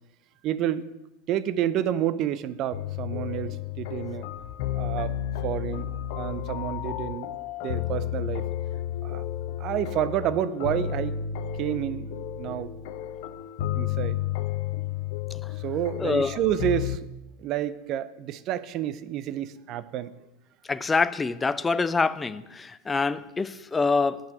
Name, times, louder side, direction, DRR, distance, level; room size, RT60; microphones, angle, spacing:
voice 1, 0.4-0.9 1.3-4.3 4.7-5.1 5.4-5.9 6.2-7.3 7.6-8.4 9.0-9.2 9.6-11.1 11.6-12.7 13.7-14.2 15.6-17.1 17.4-20.1, right 11 dB, 45° right, 15 dB, 0.6 m, -29 dB
sound 1, 2.7-17.0, left 11 dB, 60° left, 0.6 m, -32 dB
voice 2, 16.0-16.4 20.7-24.2, left 4 dB, 15° left, 14 dB, 0.5 m, -25 dB
8.7 x 5.9 x 7.7 m, 0.96 s
hypercardioid pair, 85°, 0 cm